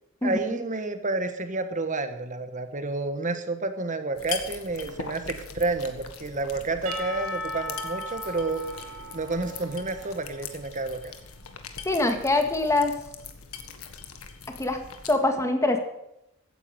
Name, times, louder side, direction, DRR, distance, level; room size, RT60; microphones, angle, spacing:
voice 1, 0.2-8.6 9.1-11.1, right 3 dB, 35° right, 8 dB, 1.5 m, -30 dB
sound 1, 4.1-15.2, left 6 dB, 90° left, 1.7 m, -41 dB
Percussion / Church bell, 6.9-11.0, left 1 dB, 80° right, 2.7 m, -37 dB
voice 2, 11.9-12.9 14.6-14.8 15.1-15.8, left 2 dB, 15° left, 5 dB, 1.9 m, -23 dB
15.5 x 9.8 x 6.9 m, 0.83 s
head